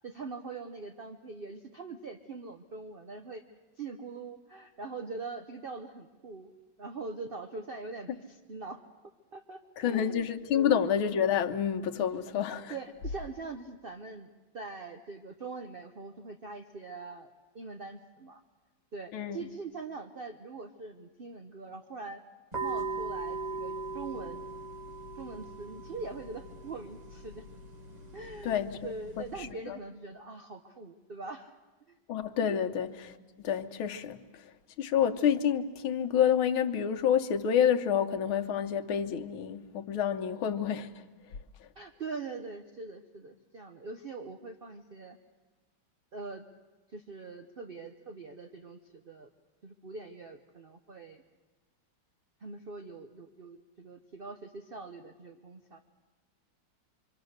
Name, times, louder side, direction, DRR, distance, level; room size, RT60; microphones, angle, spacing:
voice 1, 0.0-3.4 3.8-6.5 6.8-8.8 9.3-10.3 10.5-10.7 12.7-14.3 14.5-17.3 17.5-18.4 18.9-22.2 22.6-24.5 25.1-27.4 28.1-31.5 31.9-32.0 32.6-32.7 41.8-45.2 46.1-46.4 46.9-49.3 49.6-51.2 52.4-55.8, right 4 dB, 60° right, 0.5 m, -43 dB
voice 2, 9.8-12.7 19.1-19.4 28.4-29.3 29.7-29.8 32.1-33.1 33.4-34.2 34.8-40.9, left 8 dB, 85° left, 1.8 m, -28 dB
sound 1, 22.5-29.5, right 3 dB, 20° right, 1.4 m, -40 dB
26.0 x 24.5 x 6.5 m
omnidirectional pair, 2.2 m